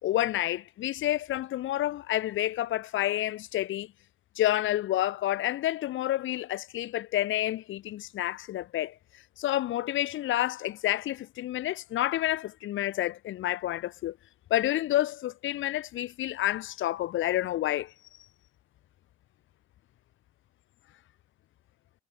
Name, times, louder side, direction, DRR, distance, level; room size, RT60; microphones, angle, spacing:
voice 1, 0.0-3.9 4.3-8.9 9.4-14.2 14.5-17.9, left 14 dB, 80° left, 1.4 m, -29 dB
cardioid pair, 90°, 20 cm